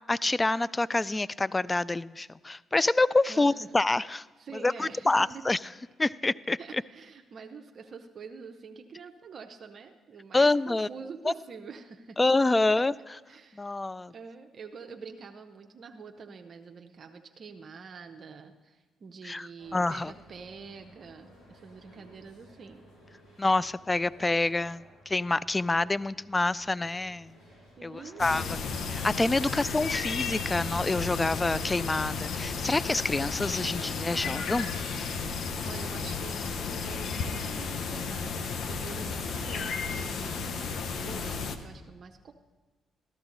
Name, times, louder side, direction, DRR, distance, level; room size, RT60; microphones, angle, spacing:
voice 1, 0.1-4.2 4.6-5.6 6.0-6.8 10.3-10.9 11.3-11.4 12.2-13.2 13.6-14.1 19.2-20.1 23.4-27.4 27.8-28.6 28.9-34.7, left 2 dB, 20° left, 20 dB, 0.3 m, -27 dB
voice 2, 3.3-3.7 4.4-5.4 6.6-12.2 12.7-12.8 13.3-13.8 14.1-22.8 27.8-28.6 29.4-29.6 35.6-42.3, right 5 dB, 50° right, 5 dB, 0.7 m, -46 dB
sound 1, 19.6-37.0, equal, 90° left, 3.3 m, -55 dB
sound 2, 28.2-41.6, left 5 dB, 65° left, 0.8 m, -33 dB
14.0 x 12.0 x 3.9 m, 1.3 s
supercardioid pair, 70°, 0 cm